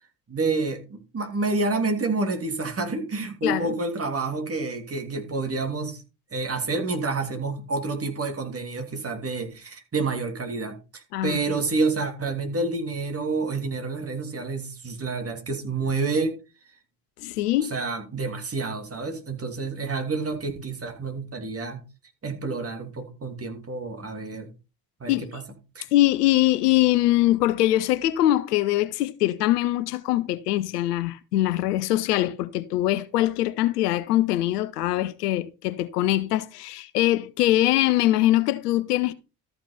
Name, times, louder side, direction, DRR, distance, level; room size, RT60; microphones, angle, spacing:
voice 1, 0.3-6.0 6.3-16.4 17.7-21.8 22.2-24.5 25.0-25.4 25.7-25.9, right 3 dB, 30° right, 3.0 m, -29 dB
voice 2, 3.4-3.7 11.1-11.6 17.2-17.7 25.1-25.4 25.9-39.1, left 15 dB, 80° left, 0.8 m, -23 dB
13.5 x 5.9 x 4.1 m
hypercardioid pair, 60°, 47 cm